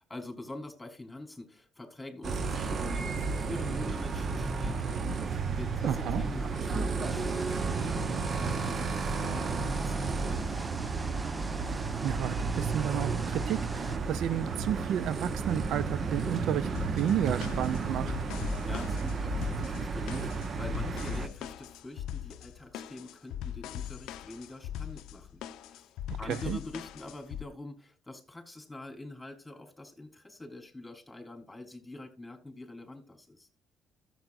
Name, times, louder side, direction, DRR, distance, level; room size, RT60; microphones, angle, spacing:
voice 1, 0.1-10.7 18.4-25.9 26.2-33.5, left 2 dB, 15° left, 3.5 m, -45 dB
sound 1, 2.2-21.3, right 4 dB, 50° right, 1.0 m, -32 dB
voice 2, 5.8-6.2 12.0-16.7 16.9-18.1 26.2-26.6, right 10 dB, 70° right, 0.4 m, -32 dB
sound 2, 7.0-14.0, right 1 dB, 15° right, 0.7 m, -43 dB
sound 3, 16.7-27.4, left 10 dB, 75° left, 0.5 m, -40 dB
13.5 x 7.6 x 2.5 m
supercardioid pair, 60°, 0 cm